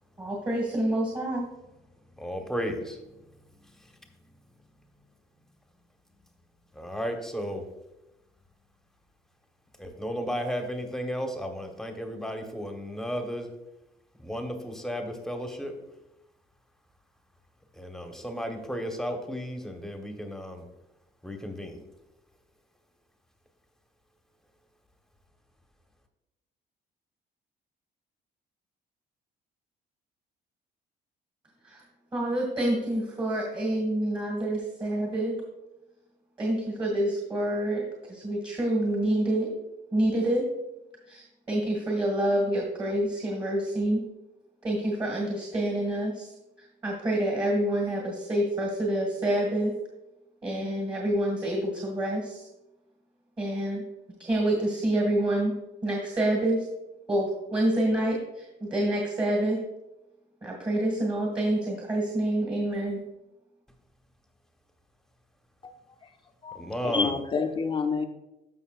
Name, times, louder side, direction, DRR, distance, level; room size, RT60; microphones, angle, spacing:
voice 1, 0.2-1.5 31.6-31.8 32.1-35.4 36.4-39.5 39.9-40.5 41.1-44.1 44.6-46.3 46.8-49.7 50.4-52.5 53.4-53.8 54.2-55.5 55.8-56.7 57.1-59.6 60.4-63.0, right 1 dB, 20° right, -1 dB, 1.9 m, -27 dB
voice 2, 2.2-3.0 3.6-3.7 6.7-7.6 9.8-13.5 14.2-15.8 17.7-20.6 21.2-21.8 66.5-67.1, equal, 5° left, 4 dB, 1.2 m, -34 dB
voice 3, 66.4-68.1, left 5 dB, 30° left, 5 dB, 0.7 m, -28 dB
13.5 x 5.5 x 2.4 m, 0.95 s
cardioid pair, 110°, 17 cm